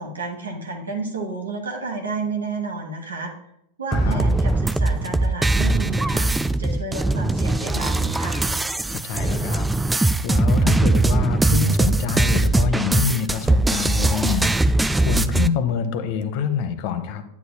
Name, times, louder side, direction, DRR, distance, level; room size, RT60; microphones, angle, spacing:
voice 1, 0.0-3.3 3.8-8.4, right 3 dB, 80° right, 1 dB, 1.3 m, -31 dB
voice 2, 3.9-4.2 8.9-9.7 9.9-17.2, left 7 dB, 50° left, 9 dB, 0.9 m, -26 dB
sound 1, 3.9-15.5, right 2 dB, 5° right, 0.3 m, -20 dB
9.6 x 8.2 x 2.3 m, 0.74 s
figure-of-eight pair, 95°, 0 cm